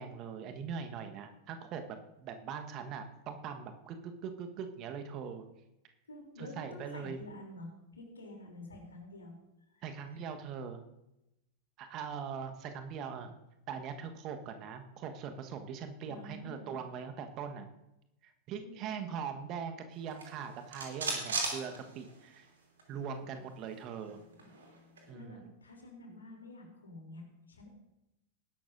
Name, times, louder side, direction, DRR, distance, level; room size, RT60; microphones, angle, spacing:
voice 1, 0.0-5.4 6.4-7.2 9.8-10.8 11.8-13.3 13.7-17.7 18.2-22.5 22.9-24.2 25.1-25.5, right 6 dB, 35° right, 6 dB, 1.3 m, -41 dB
voice 2, 6.1-9.4 9.7-9.9 16.0-16.7 18.6-19.1 25.1-27.7, left 2 dB, 75° left, 1 dB, 3.1 m, -49 dB
sound 1, 20.0-22.5 22.8-22.9 23.2-25.1, right 3 dB, 70° right, 2.9 m, -39 dB
19.5 x 11.5 x 2.6 m, 0.90 s
figure-of-eight pair, 90°, 0 cm